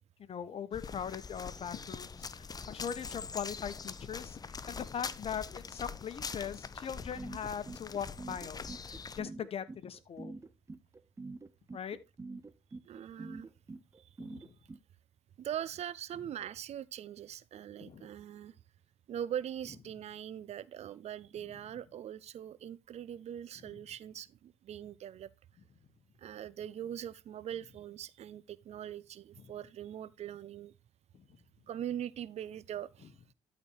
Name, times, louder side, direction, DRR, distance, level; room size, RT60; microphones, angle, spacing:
voice 1, 0.3-10.3 11.7-12.0 14.2-14.6 17.8-18.1 31.1-31.2, left 8 dB, 45° left, 1.1 m, -40 dB
sound 1, 0.7-9.2, left 5 dB, 30° left, 0.7 m, -43 dB
sound 2, 7.2-14.8, right 3 dB, 20° right, 0.8 m, -45 dB
voice 2, 12.8-13.5 14.0-14.1 14.4-14.5 15.4-18.6 19.1-25.3 26.2-30.7 31.7-33.2, right 10 dB, 55° right, 0.6 m, -42 dB
12.5 x 4.3 x 4.6 m
hypercardioid pair, 55°, 13 cm